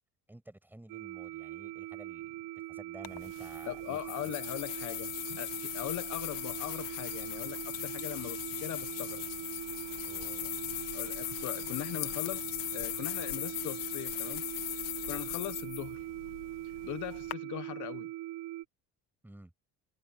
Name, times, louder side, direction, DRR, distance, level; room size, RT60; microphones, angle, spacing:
voice 1, 0.3-4.3 10.0-10.6 19.2-19.5, right 1 dB, 5° right, 6.2 m, -53 dB
sound 1, 0.9-18.7, right 15 dB, 75° right, 1.1 m, -42 dB
sound 2, 3.0-17.3, left 17 dB, 75° left, 1.5 m, -39 dB
voice 2, 3.7-9.3 10.9-14.4 15.1-16.1 16.8-18.1, left 15 dB, 60° left, 1.1 m, -40 dB
cardioid pair, 120°, 33 cm